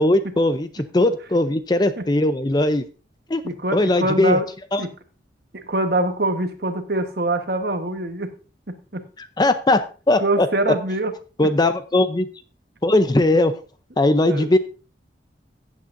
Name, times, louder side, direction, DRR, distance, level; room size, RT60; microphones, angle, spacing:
voice 1, 0.0-2.8 3.3-3.4 3.7-4.4 4.7-4.8 9.4-9.8 10.1-10.5 11.4-12.3 12.8-13.5 14.0-14.6, left 2 dB, 20° left, 11 dB, 0.5 m, -19 dB
voice 2, 3.4-4.4 4.8-4.9 5.6-8.3 8.9-9.0 10.2-11.1 14.3-14.5, right 2 dB, 55° right, 7 dB, 1.2 m, -23 dB
15.0 x 8.4 x 2.6 m, 0.35 s
head